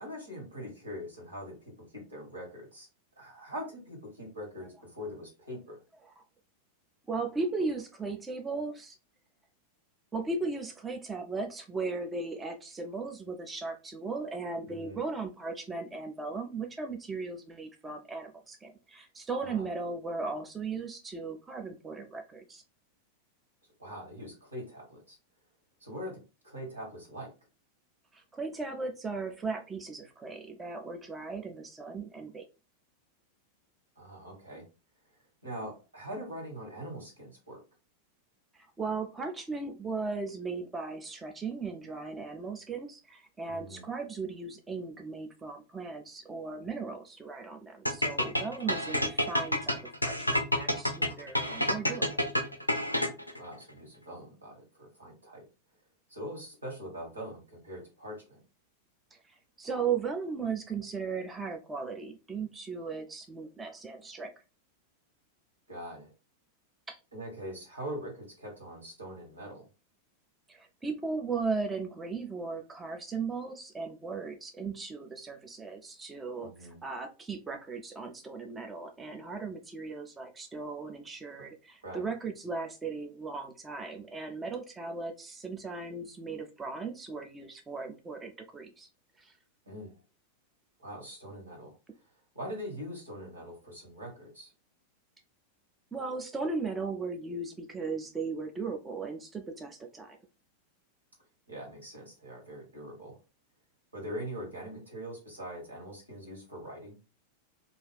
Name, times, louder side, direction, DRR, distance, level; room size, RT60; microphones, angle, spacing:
voice 1, 0.0-2.9 3.2-5.8 14.6-15.0 19.4-19.7 23.8-25.2 25.8-26.2 26.4-27.3 34.0-34.6 35.4-37.6 43.5-43.8 48.6-48.9 53.4-55.4 56.1-58.4 65.7-66.1 67.1-69.7 76.4-76.8 81.8-82.1 89.7-89.9 90.8-91.7 92.3-94.5 101.5-103.2 103.9-107.0, equal, 80° right, 0 dB, 1.4 m, -42 dB
voice 2, 7.1-9.0 10.1-22.6 28.1-32.5 38.5-52.1 59.1-64.3 66.9-67.0 70.5-88.9 89.2-89.3 95.9-100.2, right 4 dB, 15° right, 4 dB, 0.4 m, -37 dB
sound 1, 47.9-53.4, left 1 dB, 90° left, 0.4 m, -28 dB
2.4 x 2.3 x 3.2 m, 0.30 s
figure-of-eight pair, 90°, 0 cm